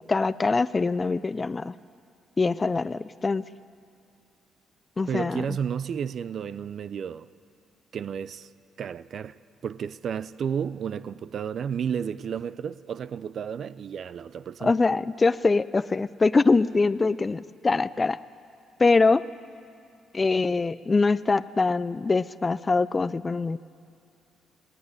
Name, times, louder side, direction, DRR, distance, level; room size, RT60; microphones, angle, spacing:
voice 1, 0.1-1.8 2.4-3.4 5.0-5.4 14.6-18.2 18.8-19.2 20.1-23.6, left 3 dB, 25° left, 0.4 m, -23 dB
voice 2, 5.1-7.3 7.9-8.5 8.8-9.4 9.6-14.7, right 7 dB, 60° right, 0.4 m, -32 dB
20.0 x 15.5 x 9.6 m
cardioid pair, 90°, 0 cm